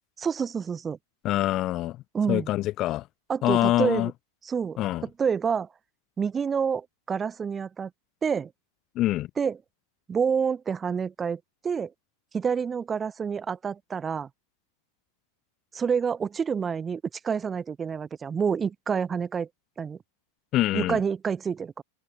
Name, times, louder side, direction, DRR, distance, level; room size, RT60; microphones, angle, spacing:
voice 1, 0.2-1.0 2.1-2.5 3.3-4.1 4.4-4.8 5.0-5.7 6.2-7.9 8.2-8.5 9.4-9.6 10.1-11.9 12.3-14.3 15.7-19.5 19.8-20.0 20.7-21.8, right 6 dB, 20° right, 1.4 m, -28 dB
voice 2, 1.2-2.0 2.3-3.0 3.4-4.1 4.8-5.0 9.0-9.3 20.5-21.0, left 15 dB, 35° left, 0.9 m, -25 dB
figure-of-eight pair, 90°, 0 cm